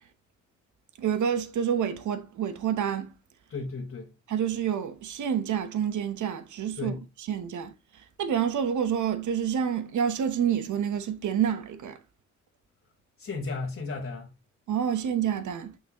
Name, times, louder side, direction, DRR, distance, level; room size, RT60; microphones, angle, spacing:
voice 1, 1.0-3.1 4.3-7.0 7.3-7.7 8.2-12.0 14.7-15.7, right 8 dB, 85° right, 1.0 m, -28 dB
voice 2, 3.5-4.1 6.7-7.0 13.2-14.3, left 3 dB, 45° left, 1.3 m, -34 dB
6.8 x 6.0 x 3.0 m
cardioid pair, 110°, 29 cm